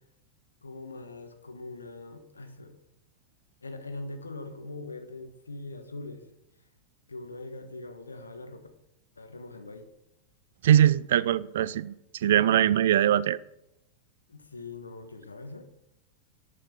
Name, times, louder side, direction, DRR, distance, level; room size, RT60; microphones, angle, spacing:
voice 1, 0.6-2.7 3.6-6.3 7.1-8.7 9.2-9.8 14.3-15.6, left 2 dB, 75° left, 7 dB, 1.4 m, -42 dB
voice 2, 10.6-11.9 12.2-13.4, right 11 dB, 60° right, 18 dB, 0.4 m, -22 dB
10.5 x 5.3 x 6.9 m, 0.85 s
figure-of-eight pair, 90°, 0 cm